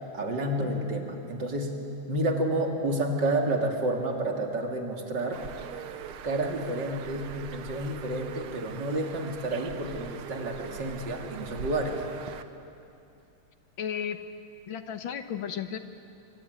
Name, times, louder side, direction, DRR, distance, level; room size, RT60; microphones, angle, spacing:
voice 1, 0.1-1.8 2.1-5.4 6.2-12.0, right 1 dB, 55° right, 2 dB, 3.2 m, -30 dB
Bird, 5.3-12.4, right 8 dB, 90° right, 2.0 m, -42 dB
voice 2, 13.8-14.2 14.7-15.8, left 8 dB, 70° left, 9 dB, 1.9 m, -33 dB
24.5 x 24.5 x 9.5 m, 2.6 s
omnidirectional pair, 2.3 m